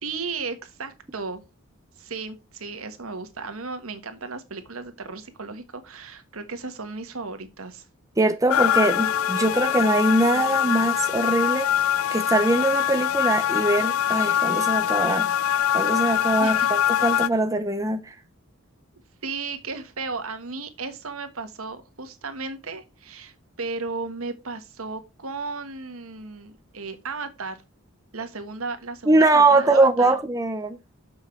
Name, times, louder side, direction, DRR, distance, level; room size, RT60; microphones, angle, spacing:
voice 1, 0.0-1.4 2.0-7.8 16.4-16.7 19.2-27.6 28.1-30.2, right 4 dB, 85° right, 1.4 m, -35 dB
voice 2, 8.2-11.7 12.1-15.3 15.7-18.1 29.1-30.8, right 2 dB, 15° right, 0.7 m, -22 dB
sound 1, 8.5-17.3, left 10 dB, 75° left, 0.3 m, -23 dB
Chink clink, 8.7-13.0 13.4-14.0, left 2 dB, 30° left, 3.2 m, -45 dB
7.3 x 5.5 x 4.5 m
head